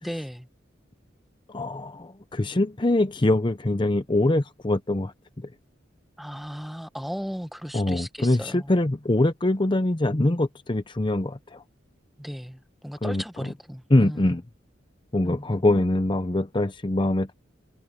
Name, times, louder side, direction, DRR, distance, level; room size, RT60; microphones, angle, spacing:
voice 1, 0.0-0.5 6.2-8.7 12.2-14.3 15.2-15.9, equal, ahead, 1.1 m, -36 dB
voice 2, 1.5-5.1 7.7-11.6 13.0-13.2 13.9-14.4 15.1-17.3, left 1 dB, 25° left, 0.7 m, -23 dB
head